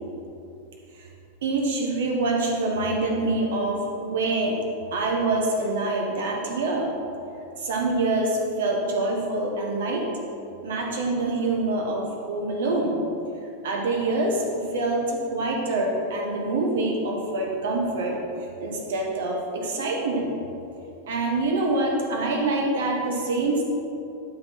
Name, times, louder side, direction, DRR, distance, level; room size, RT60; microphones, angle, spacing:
voice 1, 1.4-4.6 4.9-6.9 7.6-10.1 10.6-13.0 13.6-18.2 18.6-20.4 21.1-23.6, right 2 dB, 60° right, 0 dB, 1.3 m, -25 dB
11.0 x 4.0 x 4.2 m, 2.7 s
figure-of-eight pair, 90°, 0 cm